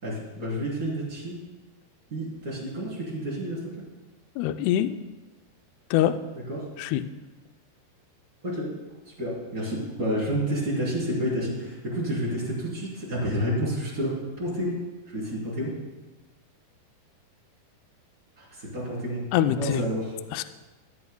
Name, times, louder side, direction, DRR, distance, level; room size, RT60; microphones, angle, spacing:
voice 1, 0.0-1.3 2.1-3.7 6.3-6.6 8.4-8.7 9.2-14.7 15.0-15.7 18.4-20.1, equal, 20° right, -6 dB, 3.1 m, -30 dB
voice 2, 4.4-5.0 5.9-6.2 6.8-7.0 19.3-19.8 20.3-20.4, left 12 dB, 85° left, 10 dB, 2.4 m, -24 dB
21.5 x 8.3 x 2.2 m, 1.2 s
omnidirectional pair, 5.0 m